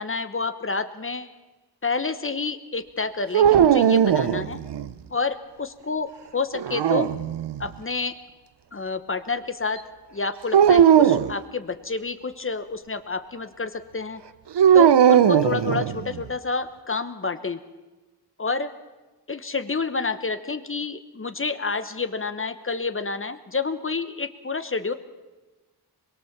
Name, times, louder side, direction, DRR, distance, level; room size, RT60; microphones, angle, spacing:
voice 1, 0.0-1.3 1.8-4.6 5.1-7.1 7.6-8.2 8.7-14.2 14.7-17.6 18.4-18.7 19.3-24.9, left 4 dB, 30° left, 10 dB, 1.0 m, -29 dB
sound 1, 3.3-4.9 6.5-7.7 10.5-11.3 14.6-16.2, right 9 dB, 90° right, 0.8 m, -18 dB
24.5 x 22.0 x 7.3 m, 1.2 s
wide cardioid pair, 115°, 40 cm